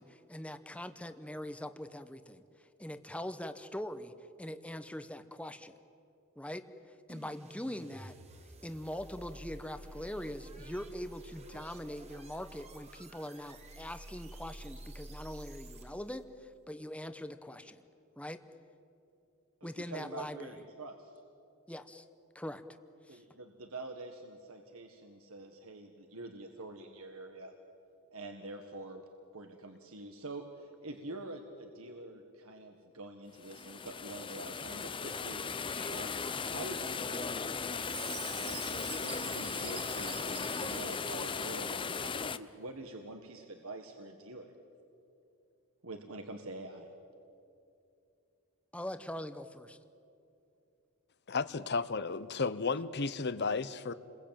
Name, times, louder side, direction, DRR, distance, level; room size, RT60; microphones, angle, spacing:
voice 1, 0.0-2.4 2.8-5.7 6.4-6.7 7.1-8.2 8.6-17.9 18.2-18.4 19.6-20.6 21.7-22.0 22.3-22.6 23.1-23.2 35.7-35.9 48.7-49.8, left 1 dB, 5° left, 10 dB, 0.9 m, -42 dB
sound 1, 7.1-16.2, right 1 dB, 30° right, 1.7 m, -50 dB
voice 2, 19.6-21.2 23.1-27.5 28.1-29.0 29.3-35.4 35.9-44.5 45.8-46.9, right 2 dB, 70° right, 4 dB, 1.6 m, -46 dB
sound 2, 33.4-42.4, left 5 dB, 25° left, 0.6 m, -37 dB
Chime, 37.8-41.8, right 10 dB, 90° right, 1.7 m, -47 dB
voice 3, 51.3-53.9, left 4 dB, 50° left, 14 dB, 0.9 m, -33 dB
29.5 x 21.5 x 9.0 m, 2.7 s
head